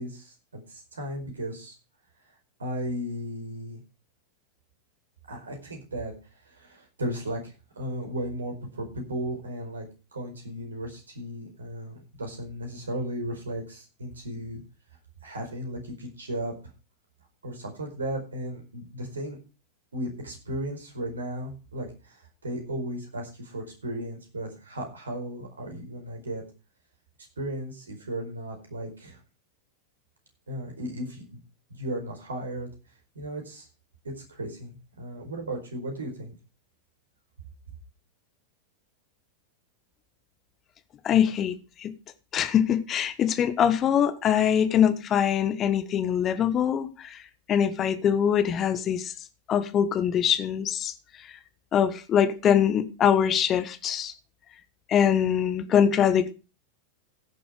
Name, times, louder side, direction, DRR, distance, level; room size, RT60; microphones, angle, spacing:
voice 1, 0.0-1.7 2.6-3.8 5.3-6.1 6.4-14.6 15.2-16.5 17.4-19.4 19.9-26.4 27.4-29.2 30.5-31.4 31.7-32.7 33.1-33.7 34.0-36.3, right 1 dB, 70° right, 4.8 m, -35 dB
voice 2, 41.0-41.5 42.3-47.2 47.5-49.1 49.5-50.9 51.7-54.1 54.9-56.3, left 9 dB, 30° left, 1.2 m, -23 dB
16.0 x 6.8 x 5.0 m
figure-of-eight pair, 90°, 0 cm